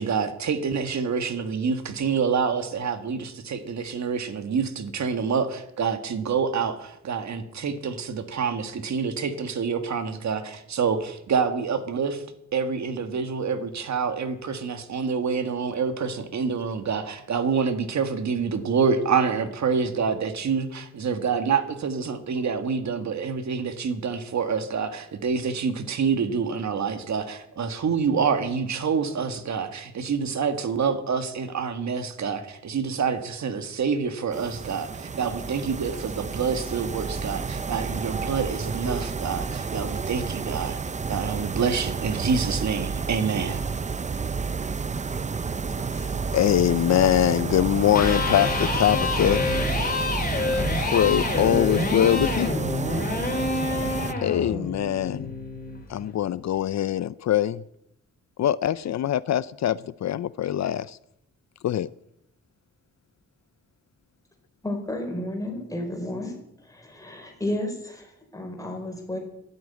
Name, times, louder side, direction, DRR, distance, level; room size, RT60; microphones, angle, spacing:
voice 1, 0.0-12.2 12.5-40.8 41.1-43.6, right 5 dB, 70° right, 1.7 m, -27 dB
sound 1, 34.3-54.1, right 5 dB, 25° right, 0.5 m, -30 dB
voice 2, 45.9-49.5 50.4-52.5 54.2-55.3 55.9-57.6 58.4-61.0 61.6-61.9, left 11 dB, 70° left, 0.5 m, -23 dB
Electric guitar, 47.9-55.9, left 3 dB, 30° left, 4.6 m, -27 dB
voice 3, 64.6-66.3 66.6-69.2, left 1 dB, 10° left, 4.8 m, -32 dB
13.0 x 11.0 x 9.5 m
wide cardioid pair, 135°, 29 cm